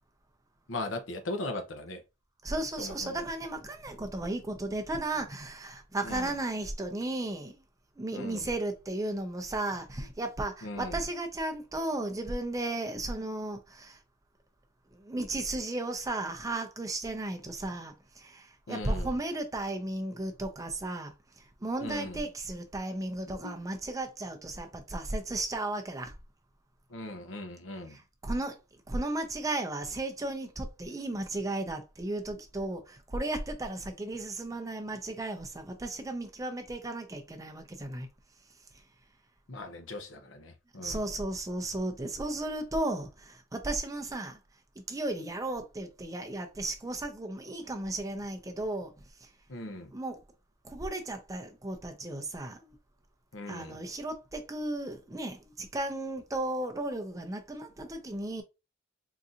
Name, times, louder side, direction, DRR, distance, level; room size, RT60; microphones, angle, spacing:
voice 1, 0.7-2.0 2.8-3.2 6.0-6.3 8.1-8.5 10.0-10.1 10.6-11.0 18.7-19.2 21.8-22.2 23.3-23.6 26.9-28.0 39.5-41.1 49.5-49.9 53.3-53.8, left 2 dB, 75° left, 0.7 m, -39 dB
voice 2, 2.4-7.6 8.0-14.0 14.9-26.2 27.9-28.6 28.9-38.1 40.8-44.4 44.9-48.9 49.9-50.2 50.6-52.7 53.5-58.4, right 2 dB, 15° right, 0.5 m, -35 dB
3.9 x 2.7 x 2.4 m
head